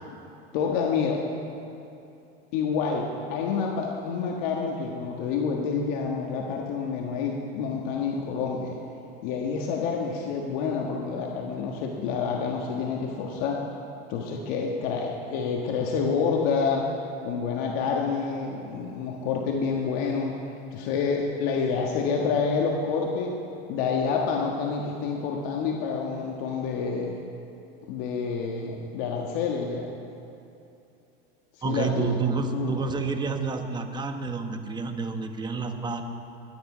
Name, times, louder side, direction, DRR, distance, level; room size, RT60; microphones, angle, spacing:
voice 1, 0.5-1.3 2.5-8.8 9.2-13.7 14.1-16.9 17.2-20.4 20.7-23.4 23.7-27.2 27.9-29.9 31.6-32.1 32.5-32.7, left 5 dB, 55° left, 0 dB, 1.5 m, -28 dB
voice 2, 31.6-36.0, right 5 dB, 15° right, 6 dB, 1.0 m, -29 dB
21.0 x 9.7 x 5.1 m, 2.8 s
supercardioid pair, 135°, 30 cm